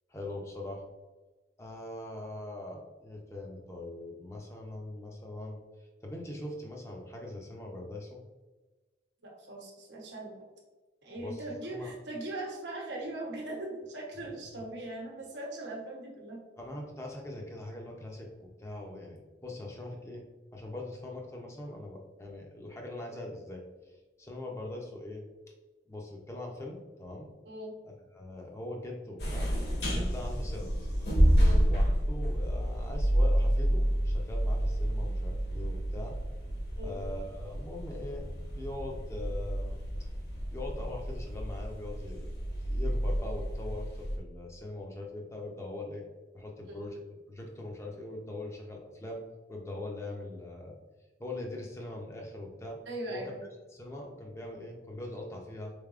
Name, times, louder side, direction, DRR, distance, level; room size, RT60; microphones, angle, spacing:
voice 1, 0.1-0.8 1.6-5.6 6.0-8.2 11.2-11.9 14.2-14.3 16.6-20.3 20.5-25.3 25.9-27.3 27.8-29.5 29.9-30.8 31.7-36.2 36.8-38.3 38.6-39.8 40.5-42.3 42.6-46.0 46.3-49.2 49.5-50.8 51.2-52.8 53.1-53.3 53.7-55.7, left 2 dB, 15° left, 0 dB, 0.5 m, -42 dB
voice 2, 9.2-10.3 11.0-16.4 27.5-27.7 31.3-31.6 36.7-36.9 46.6-46.8 52.9-53.4, right 1 dB, 85° right, -1 dB, 0.9 m, -40 dB
sound 1, 29.2-44.2, equal, 65° left, 1.2 m, -29 dB
4.0 x 3.4 x 2.4 m, 1.2 s
head